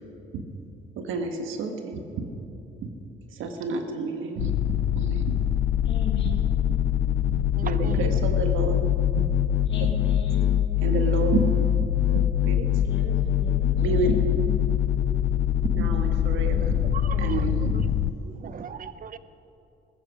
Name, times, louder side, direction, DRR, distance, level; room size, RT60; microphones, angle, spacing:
voice 1, 1.0-2.0 2.8-2.9 3.4-4.5 4.9-5.2 6.2-6.3 7.3-8.9 10.8-11.4 12.1-12.7 13.8-14.2 15.7-16.8 17.2-17.7, right 4 dB, 85° right, 5 dB, 1.5 m, -29 dB
sound 1, 4.4-18.1, left 11 dB, 90° left, 0.4 m, -24 dB
voice 2, 5.8-6.3 9.6-10.7 12.7-14.7, left 5 dB, 65° left, 2 dB, 2.2 m, -38 dB
voice 3, 7.6-8.1 16.9-17.8 18.2-19.2, right 7 dB, 45° right, 14 dB, 0.7 m, -38 dB
15.0 x 14.5 x 5.1 m, 2.7 s
cardioid pair, 90°, 20 cm